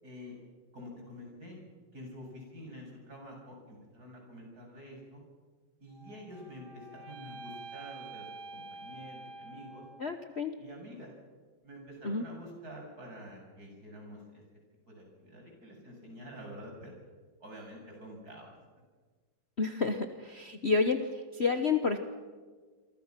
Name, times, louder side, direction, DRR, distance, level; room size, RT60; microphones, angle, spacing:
voice 1, 0.0-0.4 0.7-1.6 1.9-5.2 5.8-9.8 10.6-11.1 11.6-14.4 14.9-16.9 17.4-18.5, equal, 45° right, 0 dB, 7.7 m, -48 dB
sound 1, 5.9-10.2, right 3 dB, 75° right, 2.5 m, -47 dB
voice 2, 10.0-10.6 12.0-12.2 19.6-22.0, left 4 dB, 40° left, 6 dB, 1.2 m, -30 dB
28.5 x 24.0 x 6.0 m, 1.5 s
omnidirectional pair, 2.2 m